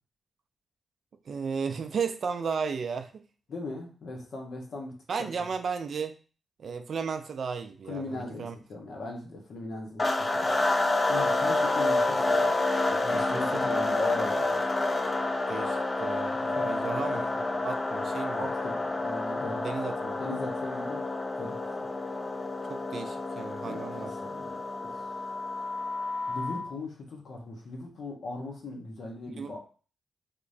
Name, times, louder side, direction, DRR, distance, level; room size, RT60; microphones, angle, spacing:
voice 1, 1.3-3.2 5.1-6.2 6.6-8.6 13.0-13.9 15.5-18.5 19.6-20.2 22.7-24.2 29.4-29.6, right 5 dB, 65° right, 0.3 m, -34 dB
voice 2, 3.5-5.3 7.9-10.6 11.1-12.5 12.9-14.6 16.5-17.0 18.4-19.6 20.2-21.0 21.4-21.9 23.6-25.1 26.3-29.6, left 2 dB, 70° left, 1.0 m, -38 dB
sound 1, 10.0-26.7, left 2 dB, 35° left, 0.6 m, -29 dB
3.6 x 3.0 x 2.6 m
supercardioid pair, 50°, 0 cm